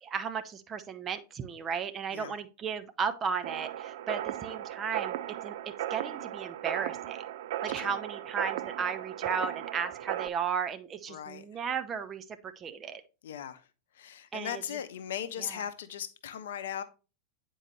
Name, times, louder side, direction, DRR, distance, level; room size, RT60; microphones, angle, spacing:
voice 1, 0.0-5.5 5.9-7.2 7.6-13.0 14.3-14.6 15.4-15.6, right 6 dB, 25° right, 0.7 m, -35 dB
sound 1, 3.4-10.3, right 12 dB, 55° right, 0.3 m, -36 dB
voice 2, 11.1-11.4 13.2-13.7 13.9-16.8, left 9 dB, 60° left, 0.6 m, -38 dB
9.0 x 4.6 x 3.0 m
figure-of-eight pair, 90°, 0 cm